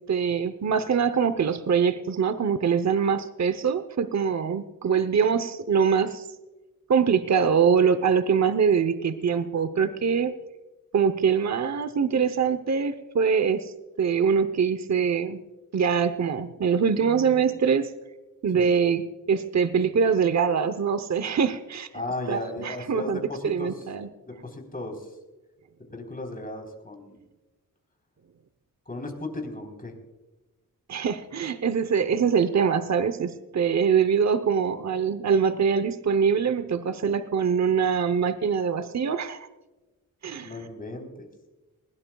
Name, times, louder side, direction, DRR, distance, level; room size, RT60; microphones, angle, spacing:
voice 1, 0.1-6.3 6.9-10.3 10.9-15.4 15.7-17.9 18.4-19.0 19.3-21.9 22.3-24.1 30.9-39.5 40.2-40.5, right 6 dB, 50° right, 11 dB, 0.8 m, -23 dB
voice 2, 21.9-23.8 24.3-25.1 25.9-27.2 28.9-29.9 40.4-41.3, left 2 dB, 25° left, 2 dB, 3.8 m, -35 dB
20.0 x 17.5 x 2.3 m, 1.1 s
wide cardioid pair, 85°, 34 cm